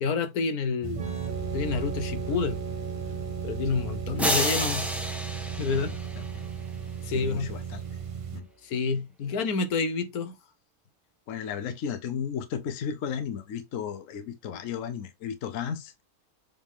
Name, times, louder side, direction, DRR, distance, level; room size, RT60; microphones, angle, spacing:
voice 1, 0.0-1.1 1.5-2.6 3.4-4.9 5.6-6.0 7.0-7.5 8.6-10.4, left 5 dB, 80° left, 1.4 m, -28 dB
sound 1, 0.8-8.4, right 8 dB, 50° right, 0.4 m, -36 dB
sound 2, 0.9-8.5, right 2 dB, 35° right, 1.2 m, -40 dB
sound 3, 4.2-6.5, equal, ahead, 1.1 m, -29 dB
voice 2, 7.1-7.8 8.3-8.5 11.3-15.9, left 7 dB, 65° left, 1.1 m, -34 dB
7.3 x 3.7 x 3.7 m
omnidirectional pair, 1.5 m